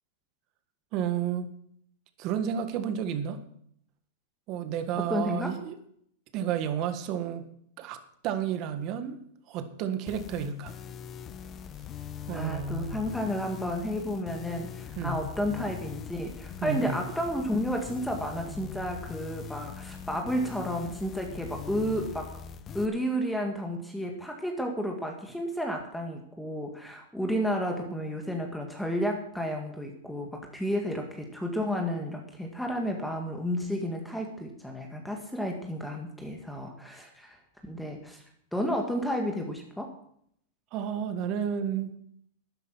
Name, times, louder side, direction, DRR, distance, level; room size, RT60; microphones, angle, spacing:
voice 1, 0.9-1.5 2.2-3.4 4.5-5.8 6.3-7.5 7.8-9.2 9.5-10.7 12.3-13.0 15.0-15.2 16.6-17.0 40.7-42.0, right 8 dB, 45° right, 9 dB, 1.7 m, -31 dB
voice 2, 5.1-5.6 12.3-22.3 22.7-38.2 38.5-39.9, equal, ahead, 2 dB, 1.9 m, -32 dB
sound 1, 10.1-22.9, left 7 dB, 30° left, 0.8 m, -42 dB
12.0 x 10.0 x 6.2 m, 0.68 s
hypercardioid pair, 130°, 0 cm